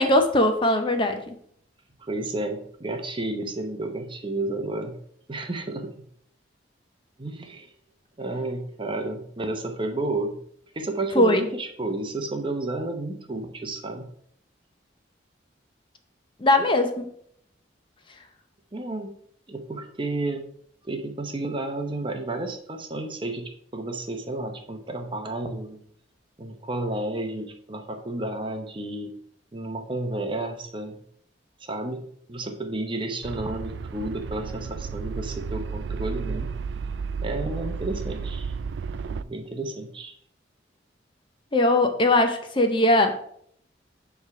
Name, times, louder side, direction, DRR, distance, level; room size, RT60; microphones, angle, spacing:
voice 1, 0.0-1.3 11.2-11.4 16.4-17.1 41.5-43.2, left 1 dB, 25° left, 6 dB, 0.6 m, -20 dB
voice 2, 2.0-5.0 5.3-6.1 7.2-7.7 8.2-10.4 10.7-14.1 18.7-19.1 19.5-20.4 20.8-25.8 26.4-29.1 29.5-31.0 31.6-36.5 37.2-38.6 39.0-40.1, right 2 dB, 25° right, 4 dB, 0.8 m, -31 dB
sound 1, 33.2-39.2, right 5 dB, 70° right, 0.3 m, -32 dB
7.1 x 3.3 x 5.9 m, 0.66 s
head